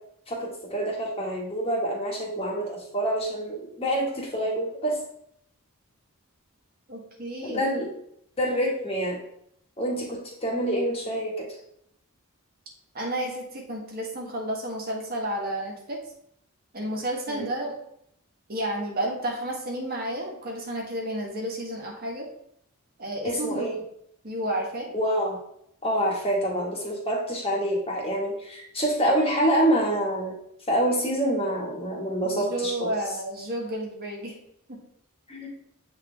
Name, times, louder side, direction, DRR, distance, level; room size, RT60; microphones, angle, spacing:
voice 1, 0.3-5.0 7.4-7.9 8.4-9.2 9.8-11.5 17.3-17.4 23.2-23.7 24.9-25.4 25.8-30.4 30.7-32.9 35.3-35.5, right 1 dB, 30° left, -3 dB, 1.6 m, -26 dB
voice 2, 6.9-7.6 12.9-16.0 16.7-17.7 18.5-22.3 23.0-23.7 24.2-24.9 32.2-34.3 34.7-34.8, right 1 dB, 45° right, -1 dB, 1.4 m, -31 dB
8.1 x 3.7 x 3.4 m, 0.71 s
head